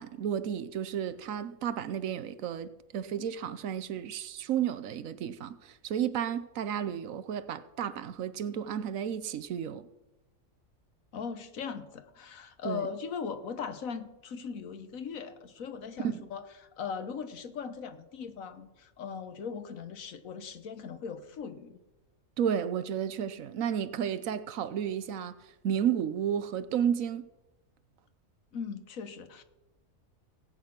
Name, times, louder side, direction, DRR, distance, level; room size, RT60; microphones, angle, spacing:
voice 1, 0.0-9.9 12.6-12.9 16.0-16.3 22.4-25.3 25.6-27.3, right 9 dB, 80° right, 1.2 m, -32 dB
voice 2, 11.1-21.8 28.5-29.4, left 6 dB, 90° left, 1.5 m, -39 dB
18.0 x 8.4 x 5.9 m
omnidirectional pair, 1.4 m